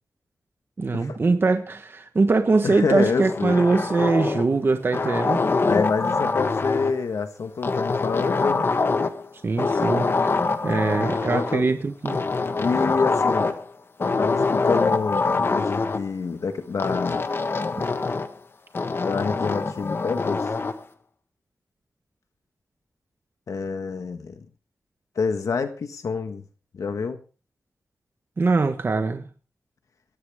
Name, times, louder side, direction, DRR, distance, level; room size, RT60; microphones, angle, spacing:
voice 1, 0.8-5.4 9.4-10.1 10.6-12.2 28.4-29.3, right 3 dB, 45° right, 7 dB, 1.3 m, -22 dB
voice 2, 2.6-3.6 5.7-8.7 11.3-11.6 12.6-13.6 14.0-17.3 19.0-20.5 23.5-24.5 25.2-26.4 26.7-27.2, left 5 dB, 80° left, 7 dB, 1.6 m, -27 dB
sound 1, 3.0-4.5 4.9-7.0 7.6-9.3 9.6-11.6 12.0-13.6 14.0-16.0 16.8-18.3 18.7-20.8, left 3 dB, 45° left, 1.4 m, -24 dB
17.5 x 14.0 x 3.6 m, 0.36 s
wide cardioid pair, 120°, 5 cm